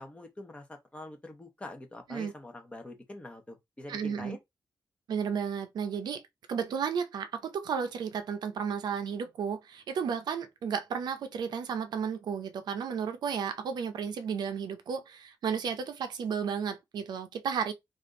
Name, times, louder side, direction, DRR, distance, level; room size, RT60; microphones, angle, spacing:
voice 1, 0.0-4.4, left 1 dB, 15° left, 0.9 m, -45 dB
voice 2, 3.9-4.4 5.1-6.2 6.5-17.7, right 7 dB, 80° right, 0.6 m, -33 dB
3.4 x 2.5 x 3.7 m
wide cardioid pair, 150°, 7 cm